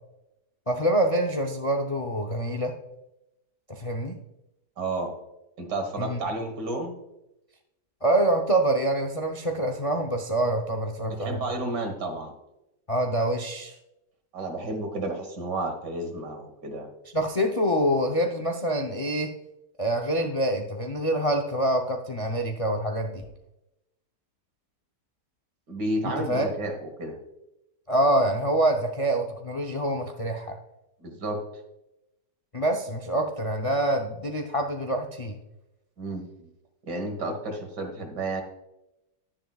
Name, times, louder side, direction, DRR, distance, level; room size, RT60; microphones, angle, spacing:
voice 1, 0.7-2.7 3.7-4.1 6.0-6.2 8.0-11.4 12.9-13.7 17.1-19.3 19.8-23.2 26.0-26.5 27.9-30.5 32.5-35.4, right 1 dB, 40° left, 4 dB, 0.4 m, -26 dB
voice 2, 4.8-5.1 5.6-6.9 11.0-12.3 14.3-16.9 25.7-27.2 31.0-31.4 36.0-36.5 36.8-38.4, right 2 dB, 80° right, 5 dB, 2.2 m, -31 dB
11.0 x 10.0 x 2.3 m, 0.89 s
omnidirectional pair, 1.8 m